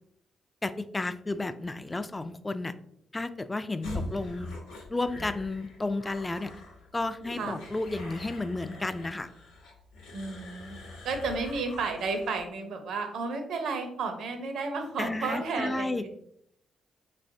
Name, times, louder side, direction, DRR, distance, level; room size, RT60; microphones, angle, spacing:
voice 1, 0.6-2.7 3.1-4.5 4.9-6.6 6.9-9.3 15.0-16.0, left 2 dB, 25° left, 12 dB, 0.3 m, -32 dB
sound 1, 3.8-12.5, left 2 dB, 90° left, 0.8 m, -42 dB
voice 2, 10.1-10.8 11.0-16.1, right 4 dB, 70° right, 5 dB, 0.6 m, -32 dB
3.5 x 3.1 x 2.6 m, 0.72 s
hypercardioid pair, 50°, 0 cm